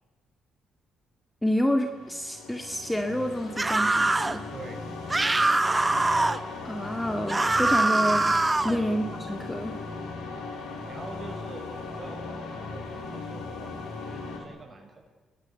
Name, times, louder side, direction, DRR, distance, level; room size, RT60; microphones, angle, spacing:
voice 1, 1.4-4.4 6.6-8.3 8.6-9.8, equal, 10° left, 6 dB, 1.9 m, -28 dB
sound 1, 1.8-14.4, left 3 dB, 85° left, 5.1 m, -38 dB
sound 2, 3.6-4.4 5.1-6.4 7.3-8.8, right 2 dB, 20° right, 1.1 m, -23 dB
voice 2, 4.5-4.8 8.6-9.0 10.3-10.6 10.9-15.0, right 3 dB, 35° right, 3 dB, 6.7 m, -45 dB
29.5 x 19.0 x 8.2 m, 1.2 s
cardioid pair, 90°, 0 cm